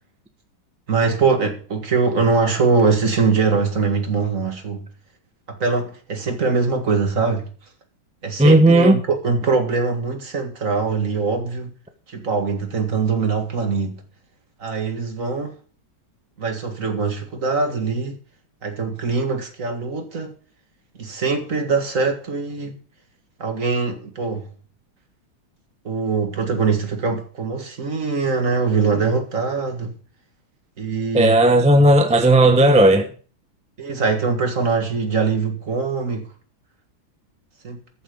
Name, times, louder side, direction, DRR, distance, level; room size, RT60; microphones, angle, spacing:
voice 1, 0.9-4.9 5.5-7.5 8.2-11.7 12.1-14.0 14.6-15.5 16.4-18.2 18.6-20.3 21.0-22.8 23.4-24.5 25.8-29.9 30.8-31.4 33.8-36.3 37.6-37.8, right 4 dB, 40° right, 2.2 m, -22 dB
voice 2, 8.4-9.0 31.1-33.1, right 1 dB, 5° right, 0.8 m, -13 dB
14.0 x 7.5 x 5.3 m
omnidirectional pair, 2.2 m